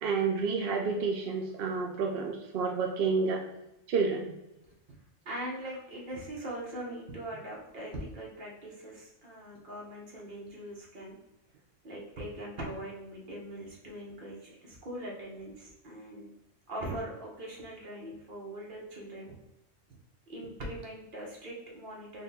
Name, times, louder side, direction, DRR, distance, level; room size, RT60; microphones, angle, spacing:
voice 1, 0.0-3.4 3.9-4.4, right 4 dB, 60° right, 2 dB, 0.6 m, -29 dB
voice 2, 5.2-11.2 11.8-16.3 16.7-19.4 20.3-22.2, right 1 dB, 45° right, -2 dB, 1.1 m, -41 dB
4.1 x 2.2 x 3.9 m, 0.90 s
omnidirectional pair, 1.3 m